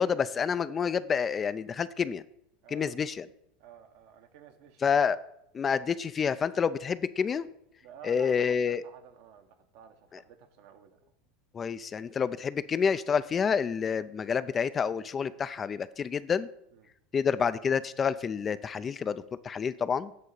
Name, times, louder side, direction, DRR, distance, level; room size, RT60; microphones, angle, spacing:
voice 1, 0.0-2.2 2.7-3.3 4.8-5.2 5.5-7.5 8.0-8.8 11.5-16.5 17.1-20.1, left 6 dB, 30° left, 14 dB, 0.4 m, -28 dB
voice 2, 2.6-3.0 3.6-4.9 7.8-11.1 16.7-16.9, right 8 dB, 65° right, 6 dB, 1.2 m, -52 dB
8.5 x 3.7 x 6.7 m, 0.75 s
hypercardioid pair, 90°, 0 cm